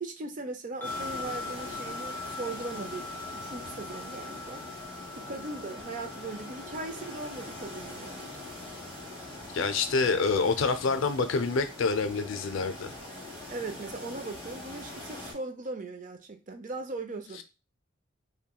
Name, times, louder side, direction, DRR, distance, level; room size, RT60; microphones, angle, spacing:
voice 1, 0.0-4.6 5.1-8.3 13.5-17.4, right 3 dB, 40° right, 0.6 m, -39 dB
sound 1, 0.8-10.1, left 3 dB, 10° left, 0.6 m, -43 dB
sound 2, 0.8-15.3, left 2 dB, 5° right, 2.0 m, -43 dB
voice 2, 9.5-12.9, left 4 dB, 65° left, 0.5 m, -27 dB
5.6 x 2.2 x 2.3 m
head